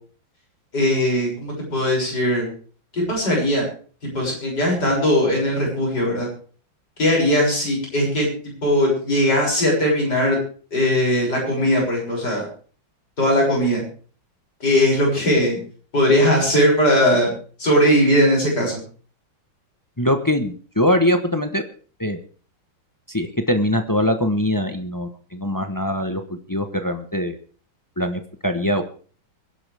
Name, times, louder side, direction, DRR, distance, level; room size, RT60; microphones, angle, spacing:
voice 1, 0.7-2.5 2.9-3.7 4.1-6.3 7.0-8.3 8.6-10.4 10.7-12.5 13.2-13.8 14.6-15.6 15.9-17.3 17.6-18.8, equal, 50° left, -2 dB, 7.2 m, -19 dB
voice 2, 20.0-21.6 22.0-22.2 23.1-27.4 28.0-28.8, left 1 dB, 15° left, 7 dB, 0.6 m, -22 dB
24.0 x 11.0 x 3.5 m, 0.42 s
omnidirectional pair, 2.2 m